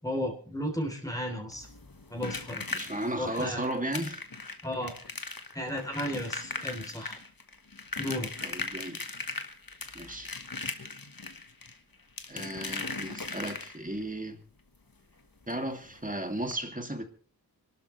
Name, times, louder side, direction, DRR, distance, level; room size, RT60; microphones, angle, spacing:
voice 1, 0.0-1.7 2.1-2.9 3.2-3.6 4.6-5.0 5.5-7.2 8.0-8.5, equal, 10° left, 3.5 m, -34 dB
sound 1, 1.5-14.0 15.5-15.6 15.9-16.0 16.4-16.5, left 3 dB, 60° left, 1.6 m, -39 dB
voice 2, 2.7-4.2 8.4-9.0 9.9-10.3 12.3-14.4 15.5-17.0, right 1 dB, 20° right, 2.6 m, -35 dB
26.0 x 12.5 x 3.3 m
wide cardioid pair, 40°, 40 cm